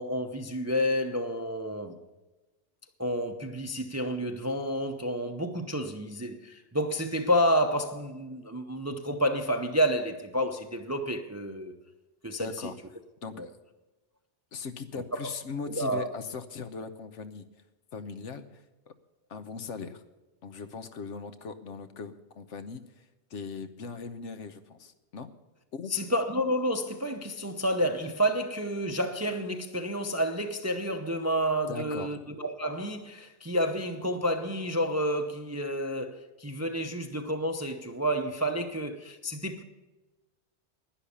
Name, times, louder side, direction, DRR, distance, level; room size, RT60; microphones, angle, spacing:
voice 1, 0.0-2.0 3.0-11.8 12.2-12.7 13.4-13.5 15.1-15.3 15.7-16.1 25.9-39.6, equal, 15° right, 0.6 m, -30 dB
voice 2, 12.4-12.7 13.2-13.5 14.5-17.4 17.9-18.9 19.3-20.0 20.4-23.0 23.3-25.3 25.7-26.1 31.7-32.1, left 5 dB, 85° left, 1.3 m, -39 dB
11.5 x 10.0 x 7.0 m
omnidirectional pair, 1.2 m